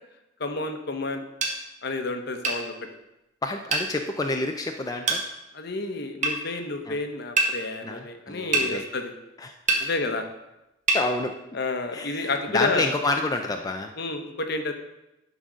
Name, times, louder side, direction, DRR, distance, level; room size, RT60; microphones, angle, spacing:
voice 1, 0.4-1.2 1.8-2.7 5.5-9.1 9.8-10.2 11.5-12.9 14.0-14.7, left 3 dB, 55° left, 6 dB, 1.0 m, -30 dB
sound 1, 1.4-1.6 2.4-2.6 3.7-3.9 5.1-5.2 6.2-6.4 7.4-7.5 8.5-8.7 9.7-9.8 10.9-11.0, right 3 dB, 40° right, 1.4 m, -23 dB
voice 2, 3.4-5.2 6.9-7.0 7.8-8.8 9.4-9.9 10.9-11.4 11.9-13.9, left 2 dB, 20° left, 4 dB, 0.4 m, -29 dB
11.5 x 4.0 x 6.2 m, 0.93 s
head